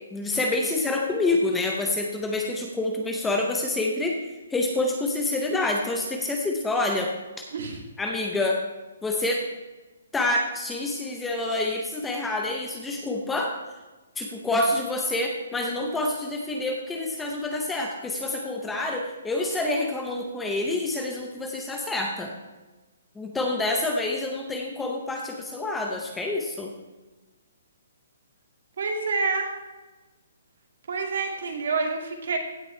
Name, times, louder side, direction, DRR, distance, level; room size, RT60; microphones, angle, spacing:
voice 1, 0.1-4.2 4.5-7.1 8.0-8.6 9.0-9.5 10.1-13.5 14.2-22.3 23.2-26.7, left 2 dB, 5° left, 1 dB, 0.6 m, -27 dB
voice 2, 28.8-29.5 30.9-32.4, right 4 dB, 55° right, 3 dB, 2.1 m, -27 dB
16.0 x 6.1 x 4.4 m, 1.2 s
hypercardioid pair, 175°, 0 cm